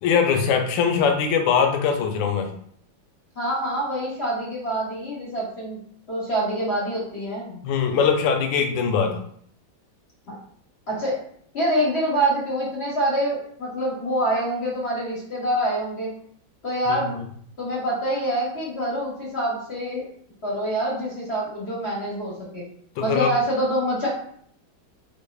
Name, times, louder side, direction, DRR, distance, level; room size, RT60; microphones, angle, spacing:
voice 1, 0.0-2.5 7.6-9.2 16.9-17.0 23.0-23.3, left 6 dB, 75° left, 5 dB, 1.2 m, -21 dB
voice 2, 3.3-5.8 6.1-7.6 10.3-10.4 10.9-11.2 11.5-16.1 16.6-17.2 17.6-20.1 20.4-22.6 23.0-24.1, right 1 dB, 50° left, -5 dB, 0.8 m, -26 dB
4.6 x 2.5 x 2.3 m, 0.64 s
omnidirectional pair, 2.1 m